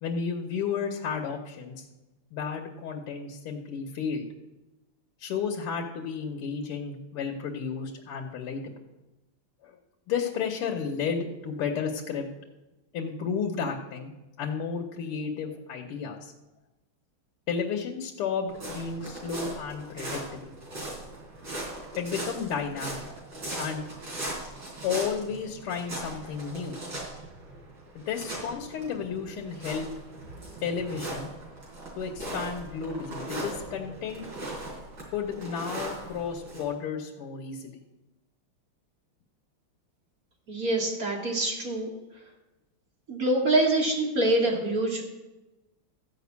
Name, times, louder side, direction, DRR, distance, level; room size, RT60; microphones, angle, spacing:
voice 1, 0.0-1.9 2.3-4.3 5.2-8.6 9.6-9.8 10.1-12.3 12.9-14.1 14.4-16.3 17.5-20.5 22.0-23.0 23.6-23.8 24.8-26.8 28.0-29.9 30.6-31.3 32.0-34.3 35.1-37.8, left 6 dB, 85° left, 1 dB, 2.0 m, -32 dB
sound 1, 18.5-36.6, right 1 dB, 55° right, 4.4 m, -39 dB
voice 2, 40.5-41.9 43.1-45.0, right 1 dB, 40° right, 0 dB, 2.5 m, -25 dB
14.5 x 5.2 x 8.2 m, 1.0 s
omnidirectional pair, 2.4 m